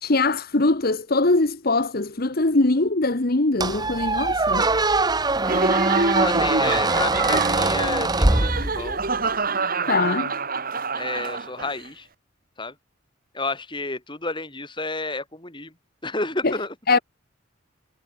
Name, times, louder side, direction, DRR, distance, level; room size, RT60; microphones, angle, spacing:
voice 1, 0.0-4.7 9.9-10.3 16.4-16.5 16.9-17.0, left 2 dB, 50° left, 1.2 m, -22 dB
Squeak, 3.6-9.1, right 2 dB, 20° right, 1.4 m, -22 dB
voice 2, 4.0-4.8 6.2-9.0 10.9-12.1 12.6-12.7 13.3-15.7 16.0-16.7, left 2 dB, 25° left, 6.1 m, -31 dB
Laughter, 5.4-11.8, right 4 dB, 45° right, 3.4 m, -26 dB
head